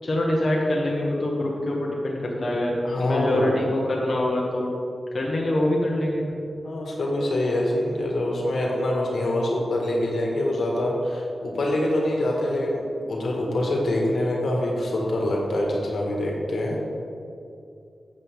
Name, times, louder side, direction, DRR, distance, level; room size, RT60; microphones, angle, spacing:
voice 1, 0.0-4.7 5.1-6.3, left 1 dB, 50° left, -3 dB, 1.5 m, -24 dB
voice 2, 2.8-3.5 6.6-16.8, left 1 dB, 75° left, -2 dB, 1.8 m, -25 dB
9.5 x 7.9 x 3.7 m, 2.6 s
cardioid pair, 70°, 0 cm